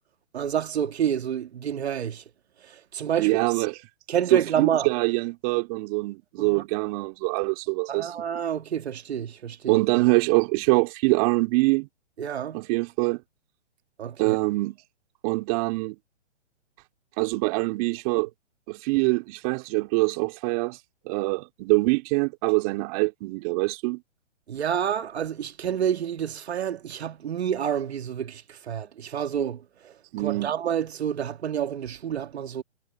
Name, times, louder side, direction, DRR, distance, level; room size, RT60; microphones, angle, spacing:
voice 1, 0.3-2.2 2.6-3.7 4.1-4.9 6.4-6.6 7.9-10.0 12.2-12.6 14.0-14.4 24.5-32.6, right 9 dB, 60° right, 2.1 m, -29 dB
voice 2, 3.2-3.8 4.3-8.1 9.7-11.9 12.5-13.2 14.2-14.8 15.2-16.0 17.2-18.3 18.7-20.8 21.1-24.0 30.1-30.5, right 26 dB, 30° right, 2.5 m, -24 dB
hypercardioid pair, 145°, 37 cm